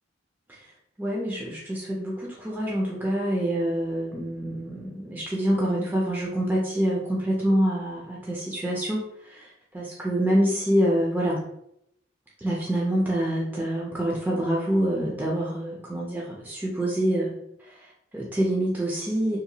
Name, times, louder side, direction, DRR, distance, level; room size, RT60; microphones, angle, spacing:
voice 1, 1.0-9.4 9.7-11.4 12.4-17.3 17.6-19.4, right 1 dB, 10° right, -4 dB, 0.4 m, -26 dB
2.8 x 2.2 x 2.7 m, 0.76 s
head